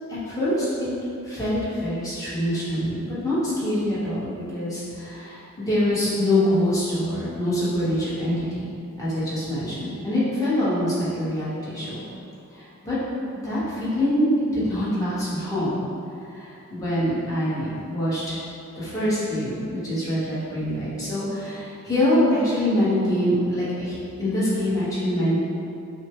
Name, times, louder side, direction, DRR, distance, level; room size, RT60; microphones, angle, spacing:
voice 1, 0.2-0.9 1.2-8.7 9.0-12.0 12.5-13.0 13.4-15.8 16.3-18.2 18.8-25.4, left 1 dB, 15° left, -11 dB, 1.2 m, -25 dB
6.2 x 2.1 x 3.7 m, 2.6 s
head